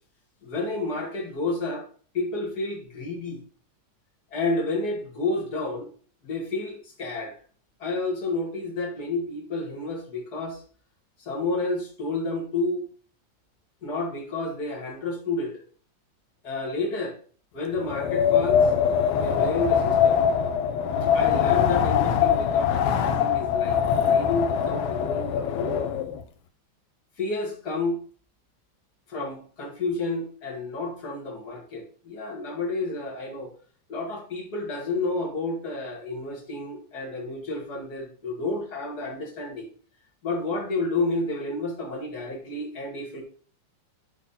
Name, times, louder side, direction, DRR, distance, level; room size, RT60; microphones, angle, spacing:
voice 1, 0.4-1.9 2.1-3.4 4.3-5.9 6.2-7.3 7.8-10.6 11.2-12.9 13.8-15.6 16.4-17.2 17.5-18.7 19.1-20.2 21.1-25.9 27.2-28.0 29.1-33.5 33.9-39.7 40.2-43.2, left 2 dB, 50° left, -1 dB, 1.1 m, -30 dB
Wind, 17.8-26.2, left 8 dB, 80° left, 2.1 m, -23 dB
10.5 x 3.7 x 5.7 m, 0.44 s
omnidirectional pair, 5.4 m